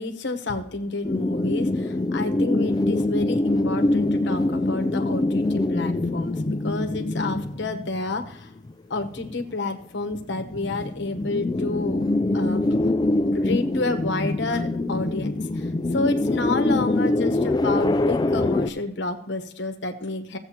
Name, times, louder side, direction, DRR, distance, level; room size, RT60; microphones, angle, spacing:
voice 1, 0.0-8.5 8.9-12.1 12.3-12.6 13.3-20.4, left 3 dB, 65° left, 6 dB, 1.0 m, -29 dB
sound 1, 1.0-8.3 8.7-8.8 9.0-9.5 10.1-18.7, left 2 dB, 20° left, 0.3 m, -24 dB
15.0 x 7.9 x 2.9 m, 0.70 s
head